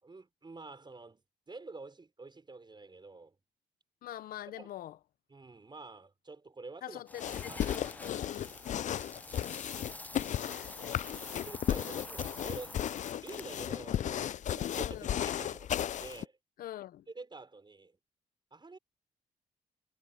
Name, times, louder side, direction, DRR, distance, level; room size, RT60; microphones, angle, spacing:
voice 1, 0.0-3.4 4.6-4.7 5.3-7.0 7.5-7.8 8.4-9.1 11.3-12.8 13.2-15.7 16.0-16.4 17.1-18.0 18.5-18.8, right 3 dB, 30° right, 5.8 m, -48 dB
voice 2, 4.0-5.0 6.8-8.5 10.4-10.9 14.8-15.2 16.6-17.1, left 12 dB, 75° left, 0.9 m, -44 dB
sound 1, 7.1-13.6, left 2 dB, 10° left, 0.7 m, -47 dB
sound 2, 7.2-16.3, left 10 dB, 55° left, 0.4 m, -35 dB
supercardioid pair, 55°, 15 cm